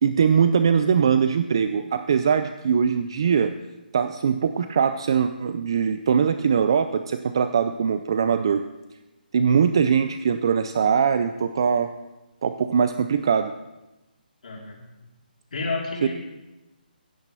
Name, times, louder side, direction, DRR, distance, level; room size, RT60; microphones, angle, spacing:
voice 1, 0.0-3.5 3.9-8.6 9.3-11.9 12.4-13.5, right 7 dB, 30° right, 10 dB, 0.4 m, -21 dB
voice 2, 14.4-14.8 15.5-16.1, left 3 dB, 50° left, -2 dB, 3.0 m, -30 dB
16.0 x 7.3 x 6.8 m, 1.0 s
hypercardioid pair, 175°, 5 cm